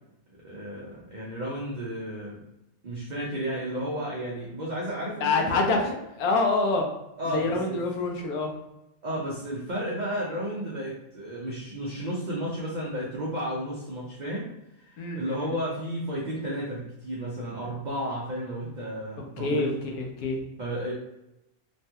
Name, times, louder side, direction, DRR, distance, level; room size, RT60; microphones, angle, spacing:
voice 1, 0.4-2.4 2.8-6.0 7.2-7.8 9.0-14.5 14.8-19.7 20.6-20.9, equal, 70° right, -5 dB, 0.4 m, -33 dB
voice 2, 5.2-5.8 6.2-6.9 7.3-8.5 15.0-15.5 19.4-19.7 20.0-20.4, left 3 dB, 80° left, 2 dB, 1.1 m, -26 dB
3.1 x 2.2 x 2.7 m, 0.89 s
omnidirectional pair, 1.5 m